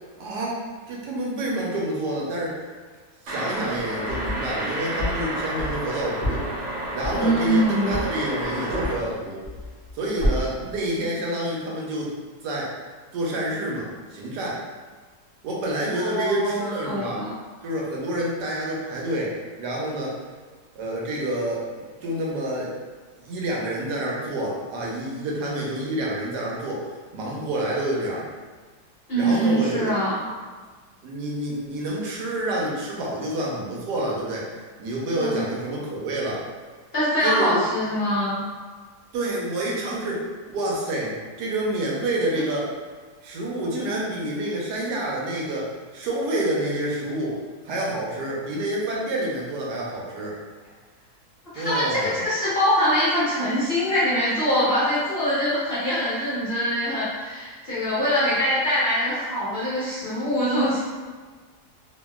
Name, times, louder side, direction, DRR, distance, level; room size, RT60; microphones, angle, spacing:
voice 1, 0.2-2.6 3.2-6.5 6.9-9.4 9.9-12.1 12.4-12.7 13.1-14.6 15.4-17.2 17.6-20.2 20.7-22.7 23.3-26.8 27.1-28.3 29.1-29.9 31.0-34.5 34.8-36.4 37.2-37.6 39.1-40.2 40.5-42.7 43.2-47.4 47.6-50.4 51.5-52.3, right 1 dB, 85° right, -4 dB, 1.3 m, -28 dB
sound 1, 3.3-8.9, right 1 dB, 65° right, 1.0 m, -31 dB
sound 2, 3.8-4.6 5.0-9.2 9.4-9.9 10.2-10.7, equal, 40° right, 0.8 m, -29 dB
voice 2, 7.1-8.1 15.9-17.3 29.1-30.2 35.2-35.4 36.9-38.4 51.5-60.8, equal, 55° left, -11 dB, 0.7 m, -23 dB
2.7 x 2.5 x 2.2 m, 1.5 s
omnidirectional pair, 1.7 m